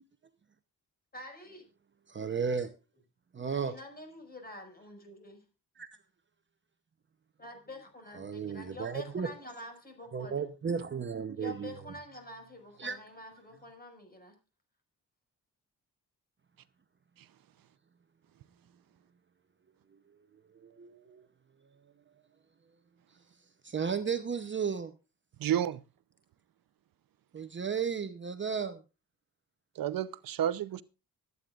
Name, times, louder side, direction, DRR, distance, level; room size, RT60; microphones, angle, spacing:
voice 1, 1.1-1.6 3.4-5.4 7.4-10.4 11.3-14.3, left 1 dB, 25° left, 5.8 m, -47 dB
voice 2, 2.1-2.7 3.3-3.7 5.8-5.9 8.1-9.3 10.1-11.7 12.8-13.0 20.5-21.3 23.6-24.9 27.3-28.8, right 6 dB, 35° right, 0.8 m, -34 dB
voice 3, 25.4-25.8 29.8-30.8, right 10 dB, 75° right, 0.8 m, -30 dB
25.0 x 9.5 x 2.5 m
wide cardioid pair, 130°, 34 cm